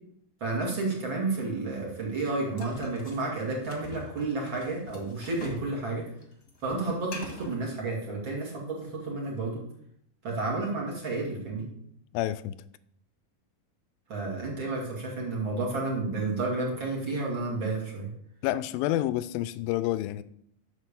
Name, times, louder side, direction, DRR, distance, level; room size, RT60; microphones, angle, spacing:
voice 1, 0.4-6.0 6.6-9.6 10.2-11.7 14.1-18.1, right 3 dB, 35° right, 3.0 m, -31 dB
sound 1, 2.6-5.7 6.0-7.6, left 3 dB, 40° left, 1.6 m, -44 dB
voice 2, 12.1-12.6 18.4-20.2, left 14 dB, 85° left, 2.3 m, -29 dB
9.9 x 6.4 x 6.9 m
omnidirectional pair, 4.1 m